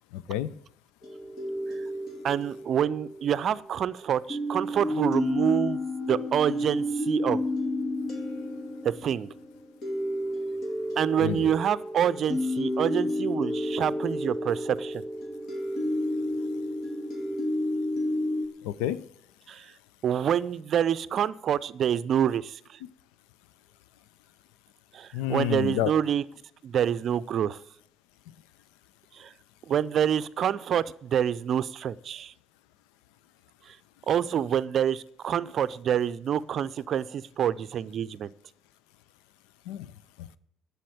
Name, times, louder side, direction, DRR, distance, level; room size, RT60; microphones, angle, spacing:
voice 1, 0.1-0.5 6.0-6.3 11.2-11.5 18.6-19.1 22.8-22.9 25.1-25.9 39.7-39.9 40.2-40.4, left 12 dB, 75° left, 19 dB, 0.4 m, -30 dB
sound 1, 1.0-3.9 4.3-18.5, left 1 dB, 55° left, 2.2 m, -31 dB
voice 2, 2.2-5.8 6.1-7.4 8.8-9.3 11.0-15.0 19.5-19.7 20.0-22.6 24.9-26.2 26.6-27.6 29.2-29.3 29.7-32.3 34.1-38.3, right 9 dB, 55° right, 17 dB, 0.5 m, -27 dB
11.5 x 7.1 x 8.8 m, 0.70 s
hypercardioid pair, 50°, 0 cm